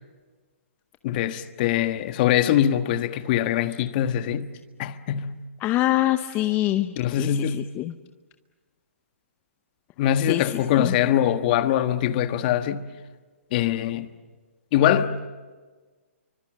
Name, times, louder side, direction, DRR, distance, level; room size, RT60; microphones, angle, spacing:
voice 1, 1.0-4.5 4.8-5.4 7.0-7.6 10.0-12.9 13.5-14.1 14.7-15.2, left 10 dB, 40° left, 1.4 m, -23 dB
voice 2, 5.6-7.9 10.2-11.0, left 15 dB, 25° left, 0.7 m, -25 dB
30.0 x 24.5 x 7.4 m
hypercardioid pair, 135°, 8 cm